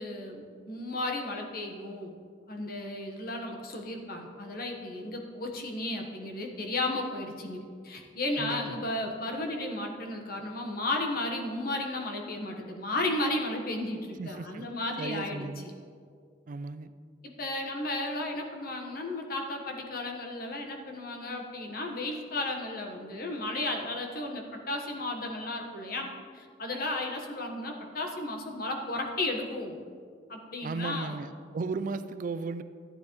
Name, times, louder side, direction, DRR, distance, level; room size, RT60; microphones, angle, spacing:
voice 1, 0.0-2.1 2.5-15.4 17.2-29.8 30.3-31.2, left 2 dB, 55° left, 2 dB, 1.3 m, -34 dB
voice 2, 8.4-8.8 14.2-14.7 15.0-15.7 16.5-16.9 30.6-32.6, right 3 dB, 50° right, 12 dB, 0.4 m, -35 dB
14.0 x 9.4 x 3.1 m, 2.1 s
head